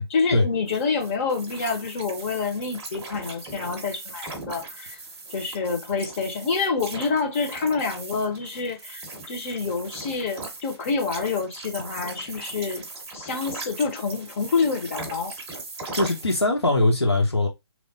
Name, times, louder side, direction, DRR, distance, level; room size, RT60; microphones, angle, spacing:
voice 1, 0.1-5.0 5.3-12.8 13.1-15.3, left 4 dB, 30° left, 0.9 m, -27 dB
sound 1, 0.7-16.4, right 3 dB, 15° right, 0.7 m, -39 dB
voice 2, 15.9-17.5, left 2 dB, 85° left, 1.2 m, -21 dB
3.2 x 2.2 x 4.0 m
figure-of-eight pair, 145°, 14 cm